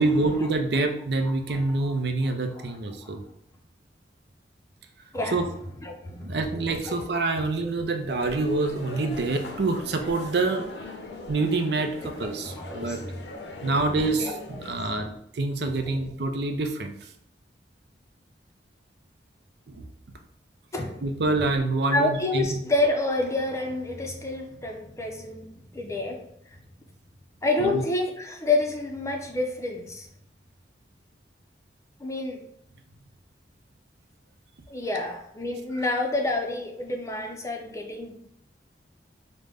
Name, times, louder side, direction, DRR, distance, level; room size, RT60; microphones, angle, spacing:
voice 1, 0.0-3.2 5.3-5.5 6.2-10.7 11.3-13.0 13.6-17.0 19.7-19.9 21.0-22.6 27.6-27.8 35.8-35.9, right 3 dB, 65° right, 5 dB, 0.5 m, -26 dB
voice 2, 5.8-6.5 6.8-7.0 12.6-13.0 13.3-13.6 14.2-14.3 14.8-15.1 15.8-16.0 20.7-21.0 21.9-26.2 27.4-30.1 32.0-32.4 34.7-38.1, left 2 dB, 15° left, 2 dB, 0.5 m, -28 dB
sound 1, 8.2-14.7, left 2 dB, 75° left, 0.7 m, -40 dB
5.1 x 2.1 x 3.4 m, 0.73 s
head